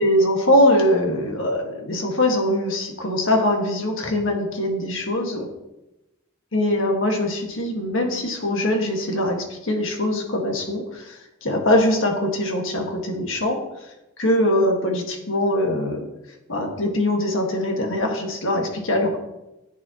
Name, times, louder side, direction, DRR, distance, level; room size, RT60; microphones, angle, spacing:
voice 1, 0.0-5.5 6.5-13.6 14.2-16.0 16.5-19.2, left 1 dB, 70° left, 2 dB, 1.6 m, -22 dB
10.5 x 8.3 x 2.9 m, 0.95 s
head